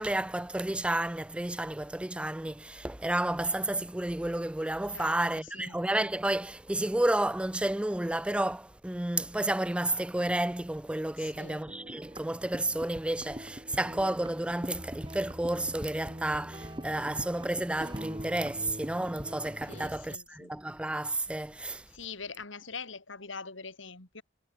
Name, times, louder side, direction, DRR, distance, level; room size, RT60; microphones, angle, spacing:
voice 1, 0.0-21.9, right 1 dB, 5° right, 0.3 m, -31 dB
voice 2, 4.9-5.8 11.2-11.7 19.7-20.5 21.9-24.2, left 5 dB, 75° left, 3.3 m, -44 dB
sound 1, 11.7-20.0, equal, 20° right, 3.7 m, -42 dB
head